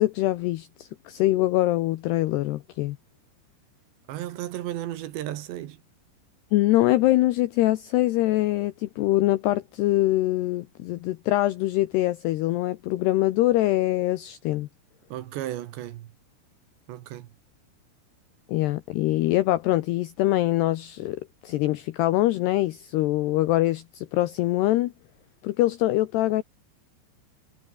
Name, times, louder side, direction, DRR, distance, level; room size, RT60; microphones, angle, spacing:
voice 1, 0.0-3.0 6.5-14.7 18.5-24.9 25.4-26.4, left 16 dB, 80° left, 2.4 m, -24 dB
voice 2, 4.1-5.8 15.1-16.1 16.9-17.3, right 13 dB, 70° right, 3.3 m, -34 dB
omnidirectional pair, 5.8 m